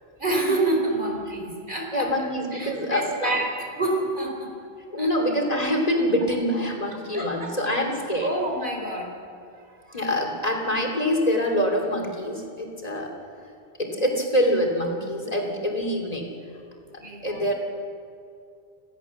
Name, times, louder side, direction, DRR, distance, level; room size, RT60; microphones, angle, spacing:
voice 1, 0.2-4.5 5.0-5.1 7.1-7.5 8.2-9.1 9.9-10.0 17.0-17.5, right 2 dB, 50° right, 1 dB, 4.2 m, -28 dB
voice 2, 1.9-3.3 4.9-8.3 9.9-13.1 13.8-16.3 16.9-17.5, equal, 35° left, 2 dB, 3.0 m, -25 dB
26.5 x 17.0 x 7.2 m, 2.4 s
omnidirectional pair, 1.1 m